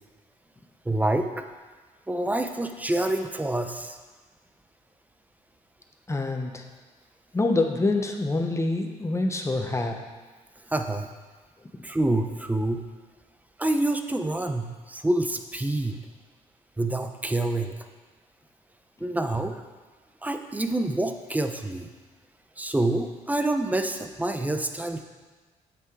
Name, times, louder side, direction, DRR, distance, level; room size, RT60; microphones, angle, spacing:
voice 1, 0.8-1.4 2.1-4.0 10.7-11.1 11.8-12.8 13.6-16.0 16.8-17.8 19.0-19.6 20.2-21.9 22.6-25.0, right 2 dB, 10° right, 7 dB, 0.7 m, -27 dB
voice 2, 6.1-6.6 7.3-10.0, left 2 dB, 20° left, 3 dB, 1.1 m, -26 dB
8.0 x 6.1 x 4.7 m, 1.3 s
cardioid pair, 75°, 14 cm